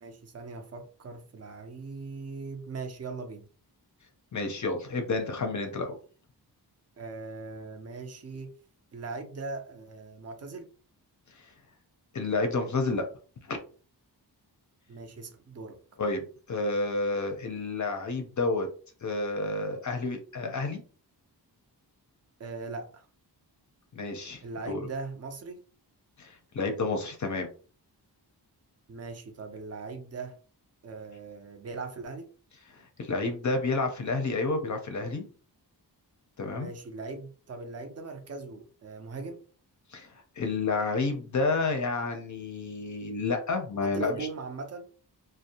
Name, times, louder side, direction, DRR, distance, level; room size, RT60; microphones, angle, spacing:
voice 1, 0.0-3.5 7.0-8.6 8.9-10.7 14.9-15.8 22.4-23.1 24.4-25.6 28.9-30.4 30.8-32.3 36.5-39.4 43.8-44.9, right 3 dB, 40° right, 6 dB, 0.5 m, -40 dB
voice 2, 4.3-6.0 11.4-11.5 12.1-13.1 13.4-13.6 16.0-18.7 19.0-20.8 23.9-24.8 26.2-27.5 32.7-35.3 36.4-36.7 39.9-44.3, left 3 dB, 45° left, 5 dB, 0.5 m, -30 dB
2.5 x 2.0 x 2.7 m, 0.39 s
wide cardioid pair, 150°, 41 cm